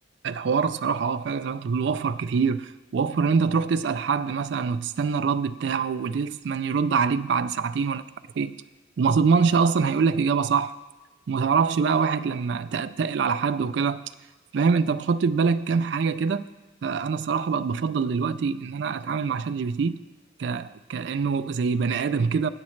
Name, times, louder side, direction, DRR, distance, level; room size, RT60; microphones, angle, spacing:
voice 1, 0.2-8.0 8.4-8.5 9.0-10.7 11.3-14.0 14.5-16.4 16.8-20.0 20.4-22.5, right 5 dB, 65° right, 0.3 m, -24 dB
16.5 x 8.7 x 3.2 m
head